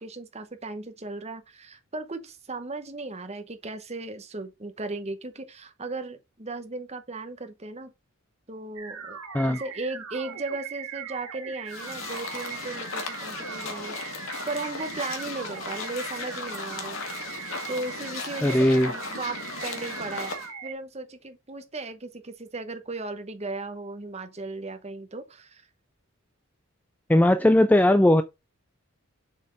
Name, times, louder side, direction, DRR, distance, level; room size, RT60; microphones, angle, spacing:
voice 1, 0.0-7.9 8.5-17.0 17.7-20.4 20.6-25.6, right 3 dB, 30° right, 1.0 m, -36 dB
sound 1, 8.8-20.7, right 7 dB, 90° right, 2.3 m, -40 dB
sound 2, 11.7-20.5, left 4 dB, 65° left, 2.0 m, -36 dB
voice 2, 18.4-18.9 27.1-28.2, left 1 dB, 5° left, 0.3 m, -18 dB
7.1 x 4.4 x 5.0 m
head